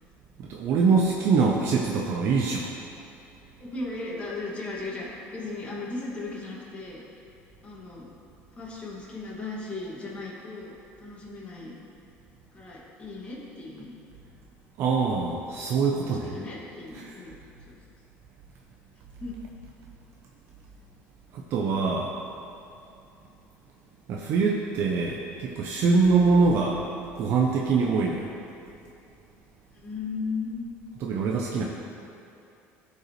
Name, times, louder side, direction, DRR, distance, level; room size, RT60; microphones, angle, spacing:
voice 1, 0.4-2.7 14.8-16.4 16.9-17.1 21.3-22.1 24.1-26.8 27.2-28.3 31.0-31.6, right 4 dB, 55° right, 0 dB, 0.7 m, -24 dB
voice 2, 3.6-5.1 5.3-7.2 7.6-8.0 8.5-11.7 12.5-13.9 16.0-17.4 17.7-17.8 19.2-19.4 29.8-30.6, left 3 dB, 25° left, -6 dB, 2.2 m, -36 dB
15.0 x 5.4 x 3.2 m, 2.6 s
cardioid pair, 140°, 5 cm